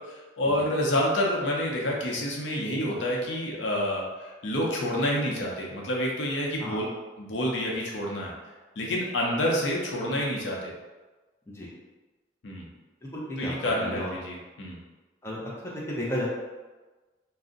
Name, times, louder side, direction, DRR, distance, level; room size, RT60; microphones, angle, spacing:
voice 1, 0.0-6.9 7.2-8.3 8.8-10.7 12.4-12.6 13.4-14.8, left 1 dB, 80° left, -2 dB, 0.6 m, -28 dB
voice 2, 13.0-13.5 13.8-14.1 15.2-16.3, left 1 dB, 15° left, -5 dB, 0.5 m, -33 dB
2.5 x 2.0 x 3.6 m, 1.2 s
head